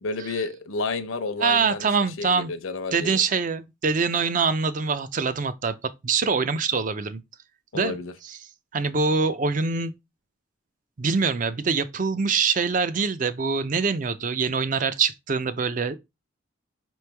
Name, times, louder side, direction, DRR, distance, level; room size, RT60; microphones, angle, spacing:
voice 1, 0.0-1.9 2.2-3.2 7.7-8.1, left 3 dB, 85° left, 0.7 m, -30 dB
voice 2, 1.4-2.5 2.9-7.2 7.7-8.0 8.2-8.4 8.7-9.9 11.0-16.0, right 5 dB, 40° right, 0.4 m, -24 dB
5.0 x 3.1 x 3.3 m
head